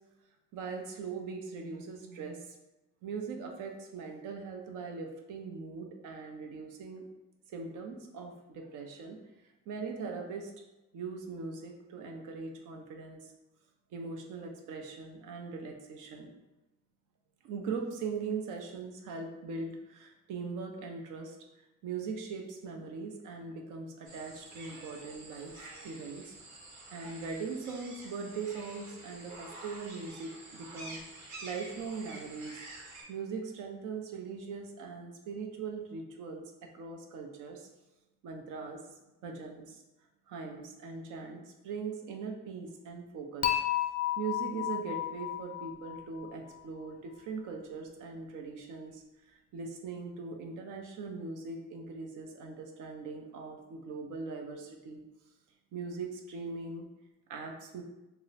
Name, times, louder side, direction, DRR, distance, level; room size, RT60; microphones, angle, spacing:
voice 1, 0.5-2.6 3.0-7.0 7.5-9.2 9.7-10.5 10.9-13.3 13.9-16.3 17.4-21.4 21.8-25.5 25.8-26.4 26.9-32.6 33.1-36.4 36.7-37.7 38.2-38.8 39.2-39.8 40.3-43.6 44.2-55.0 55.7-56.9 57.3-57.8, right 4 dB, 85° right, 2 dB, 0.6 m, -40 dB
sound 1, 24.1-33.0, right 2 dB, 70° right, 1.0 m, -48 dB
Dishes pots and pans / Chink clink, 43.4-46.6, left 12 dB, 30° left, 0.4 m, -33 dB
2.8 x 2.1 x 3.9 m, 1.0 s
cardioid pair, 90°, 30 cm